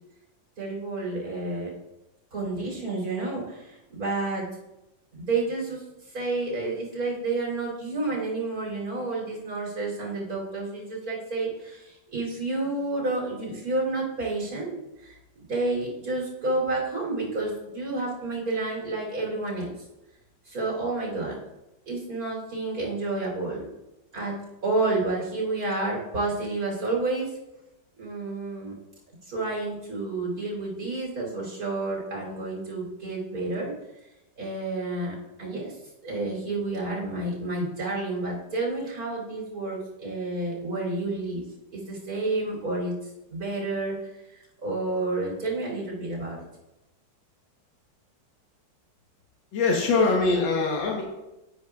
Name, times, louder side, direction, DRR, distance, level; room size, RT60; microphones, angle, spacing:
voice 1, 0.6-1.7 2.3-4.5 5.1-14.8 15.0-19.7 20.5-21.4 21.9-23.7 24.1-24.4 24.6-27.4 28.0-28.8 29.2-33.7 34.4-41.5 41.7-46.4, right 2 dB, 50° right, -4 dB, 3.6 m, -30 dB
voice 2, 49.5-51.0, left 3 dB, 85° left, -2 dB, 1.9 m, -23 dB
10.0 x 9.3 x 2.4 m, 0.96 s
omnidirectional pair, 2.0 m